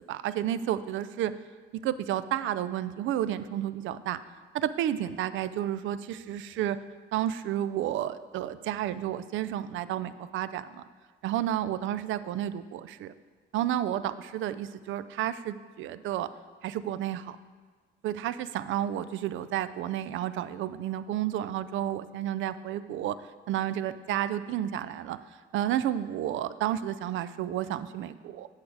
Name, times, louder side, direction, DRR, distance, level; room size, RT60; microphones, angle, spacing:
voice 1, 0.1-1.3 1.8-4.2 4.5-6.8 7.1-10.8 11.2-13.1 13.5-16.3 16.6-17.4 18.0-23.2 23.5-25.2 25.5-28.5, right 11 dB, 80° right, 14 dB, 0.4 m, -31 dB
8.5 x 6.3 x 4.6 m, 1.5 s
cardioid pair, 90°, 20 cm